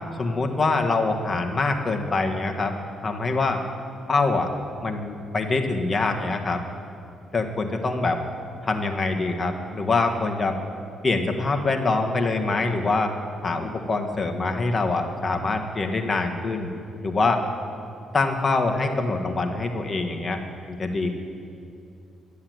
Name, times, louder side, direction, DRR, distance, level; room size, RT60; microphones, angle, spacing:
voice 1, 0.2-2.7 3.0-3.6 4.1-4.5 4.8-6.6 7.3-8.2 8.6-10.6 11.0-13.1 13.4-16.7 17.0-17.4 18.1-20.4 20.7-21.1, left 3 dB, 30° left, 3 dB, 1.6 m, -24 dB
12.0 x 8.5 x 9.5 m, 2.5 s
cardioid pair, 90°, 0 cm